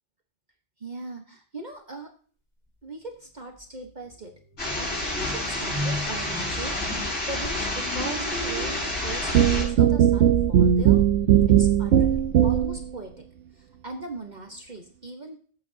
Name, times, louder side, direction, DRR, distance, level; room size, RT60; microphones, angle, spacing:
voice 1, 0.8-2.1 2.8-4.3 4.7-11.0 11.5-13.1 13.5-15.4, right 2 dB, 40° right, 3 dB, 1.3 m, -39 dB
sound 1, 3.1-3.2 3.5-9.7, equal, 15° right, 5.2 m, -37 dB
sound 2, 4.6-9.6, left 1 dB, 80° left, 6.3 m, -29 dB
sound 3, 9.3-12.9, right 10 dB, 85° right, 1.0 m, -19 dB
16.5 x 8.4 x 2.8 m, 0.43 s
omnidirectional pair, 1.2 m